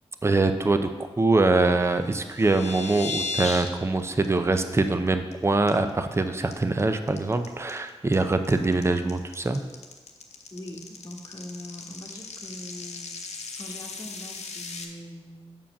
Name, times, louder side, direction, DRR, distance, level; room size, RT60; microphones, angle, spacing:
voice 1, 0.2-0.9 1.2-9.6, right 3 dB, 25° right, 8 dB, 0.6 m, -23 dB
sound 1, 2.0-3.7 4.0-4.3 4.6-4.7 5.1-5.3 5.7-6.1 6.5-14.8, left 4 dB, 85° left, 0.8 m, -36 dB
voice 2, 10.5-15.6, left 1 dB, 30° left, -2 dB, 1.3 m, -42 dB
7.3 x 4.8 x 6.0 m, 1.3 s
cardioid pair, 60°, 11 cm